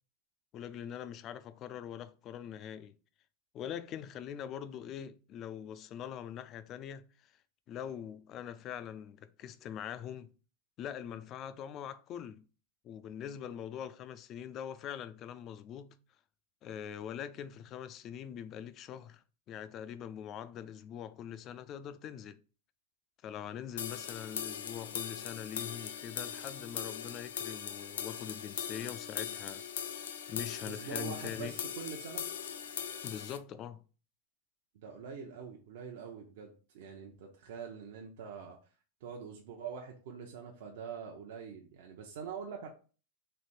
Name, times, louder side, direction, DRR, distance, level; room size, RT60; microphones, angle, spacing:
voice 1, 0.5-3.0 3.5-7.3 7.7-10.3 10.8-12.5 12.8-16.0 16.6-22.4 23.2-29.6 30.3-31.6 33.0-33.8, left 9 dB, 30° left, 0.3 m, -43 dB
sound 1, 23.8-33.4, left 8 dB, 85° left, 0.5 m, -40 dB
voice 2, 30.7-32.3 34.7-38.6 39.0-42.7, right 6 dB, 65° right, 0.7 m, -44 dB
3.4 x 3.1 x 4.2 m
supercardioid pair, 150°, 0 cm